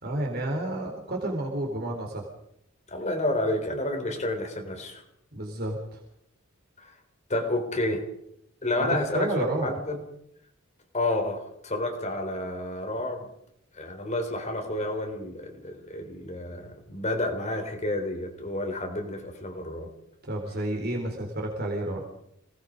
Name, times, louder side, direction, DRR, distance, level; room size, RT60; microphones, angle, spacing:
voice 1, 0.0-2.2 5.3-6.0 8.7-8.9 9.1-9.7 20.2-22.0, right 1 dB, 50° right, 1 dB, 3.9 m, -30 dB
voice 2, 2.9-5.0 6.8-6.9 7.3-8.0 8.6-10.1 10.9-13.2 13.7-19.9, left 1 dB, 35° left, 4 dB, 3.7 m, -30 dB
26.5 x 19.0 x 5.2 m, 0.74 s
head